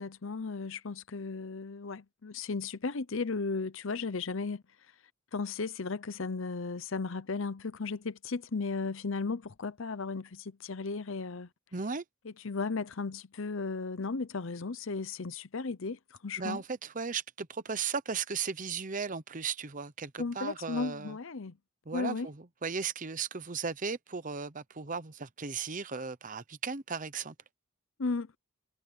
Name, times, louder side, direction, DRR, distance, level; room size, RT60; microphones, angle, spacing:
voice 1, 0.0-4.6 5.3-11.5 12.2-16.6 20.2-21.6 21.9-22.3 28.0-28.3, left 4 dB, 60° left, 0.7 m, -35 dB
voice 2, 11.7-12.0 16.4-21.2 21.9-27.3, right 5 dB, 35° right, 0.8 m, -36 dB
head